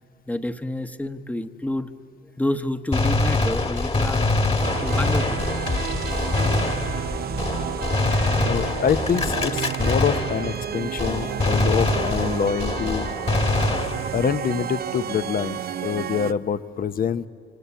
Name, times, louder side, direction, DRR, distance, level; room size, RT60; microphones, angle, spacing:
voice 1, 0.3-1.9 2.4-5.4, left 1 dB, 5° left, 9 dB, 1.1 m, -29 dB
Gunshot gunfire, 2.9-10.7 11.0-14.3, left 2 dB, 30° left, 1.7 m, -24 dB
sound 1, 4.6-16.3, right 9 dB, 50° right, 0.6 m, -31 dB
voice 2, 8.4-13.1 14.1-17.3, left 7 dB, 45° left, 13 dB, 0.8 m, -25 dB
27.5 x 24.5 x 8.4 m, 2.2 s
cardioid pair, 90°, 20 cm